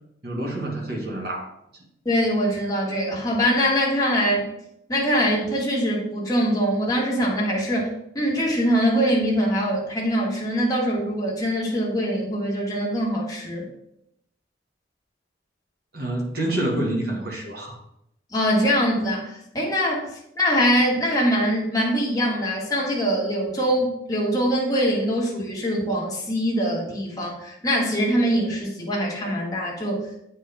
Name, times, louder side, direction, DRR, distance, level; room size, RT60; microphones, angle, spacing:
voice 1, 0.2-1.5 15.9-17.8, right 1 dB, 50° right, 0 dB, 1.5 m, -27 dB
voice 2, 2.0-4.5 4.9-13.7 18.3-30.1, equal, 20° left, -3 dB, 1.5 m, -23 dB
8.5 x 4.6 x 3.4 m, 0.79 s
head